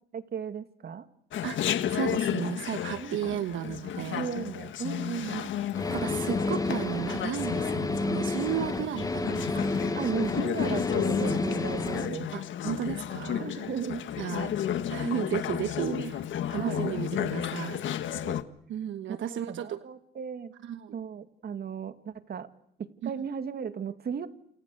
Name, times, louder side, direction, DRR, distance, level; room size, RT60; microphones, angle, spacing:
voice 1, 0.1-1.1 3.0-3.2 4.0-5.5 8.6-8.8 9.5-9.6 9.9-12.3 13.4-14.1 14.3-14.4 15.9-16.1 16.5-18.4 19.1-20.5 20.9-22.5 22.8-24.3, right 7 dB, 55° right, 10 dB, 2.4 m, -36 dB
Chatter, 1.3-18.4, left 10 dB, 75° left, 1.7 m, -33 dB
voice 2, 1.9-4.3 5.2-5.5 5.9-10.1 12.3-13.7 14.2-17.8 18.7-19.8 20.6-21.0 23.0-23.1, right 10 dB, 75° right, 10 dB, 1.3 m, -34 dB
sound 1, 5.7-12.1, left 2 dB, 20° left, 1.5 m, -31 dB
29.0 x 28.5 x 6.7 m, 0.75 s
cardioid pair, 90°, 20 cm